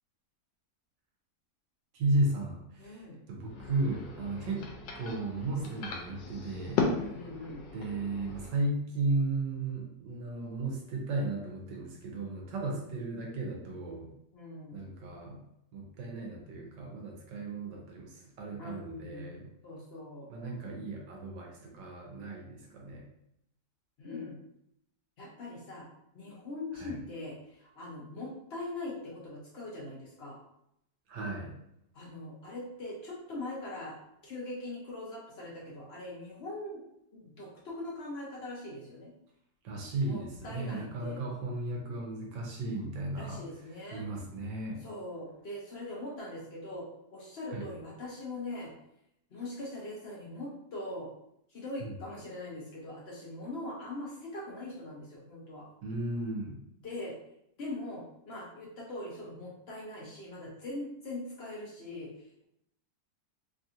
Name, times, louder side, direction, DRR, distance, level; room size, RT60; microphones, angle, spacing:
voice 1, 1.9-4.7 4.9-6.9 7.7-14.1 14.7-15.4 15.7-19.5 20.3-23.1 26.7-27.0 31.1-31.6 39.6-43.4 43.9-44.8 47.5-47.7 51.8-52.0 55.8-56.6, right 2 dB, 85° right, 0 dB, 1.4 m, -35 dB
voice 2, 2.8-3.2 4.3-4.6 6.9-7.6 12.6-12.8 14.3-14.9 18.6-19.4 19.6-20.3 24.0-24.4 25.2-25.9 26.1-30.4 31.9-34.0 34.2-36.8 37.1-39.1 40.1-41.2 43.2-44.1 44.8-48.7 49.3-51.1 51.5-55.7 56.8-57.1 57.6-62.1, left 2 dB, 65° left, -4 dB, 0.6 m, -41 dB
sound 1, 3.4-8.5, left 4 dB, 85° left, 1.3 m, -36 dB
3.4 x 2.7 x 2.4 m, 0.77 s
omnidirectional pair, 1.9 m